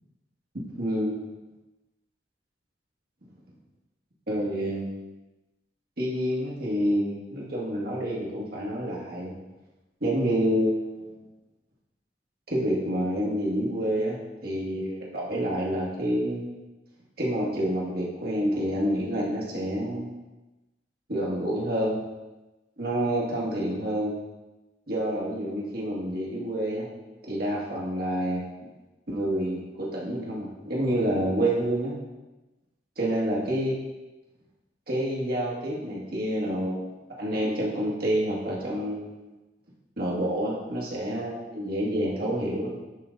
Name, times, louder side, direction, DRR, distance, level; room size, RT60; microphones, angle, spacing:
voice 1, 0.7-1.2 4.3-5.1 6.0-9.3 10.0-11.3 12.5-16.5 17.2-20.1 21.1-22.0 22.8-24.2 24.9-26.9 27.3-28.4 29.1-31.9 33.0-33.8 34.9-36.9 37.2-39.3 40.0-42.7, equal, 55° right, -4 dB, 2.0 m, -28 dB
10.5 x 3.9 x 4.1 m, 1.1 s
head